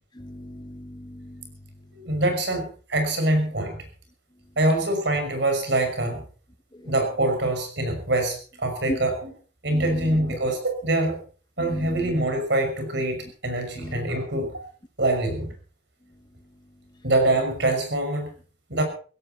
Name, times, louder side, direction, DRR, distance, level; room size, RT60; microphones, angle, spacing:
voice 1, 0.2-1.4 8.9-9.0 9.7-9.8 11.7-12.1 13.8-13.9, equal, 25° left, 8 dB, 1.0 m, -35 dB
voice 2, 1.9-3.8 4.6-6.2 6.8-9.3 9.6-11.2 11.6-14.5 15.0-15.5 17.0-18.3 18.7-18.8, right 1 dB, 65° right, 6 dB, 5.9 m, -24 dB
17.0 x 16.5 x 4.3 m, 0.40 s
head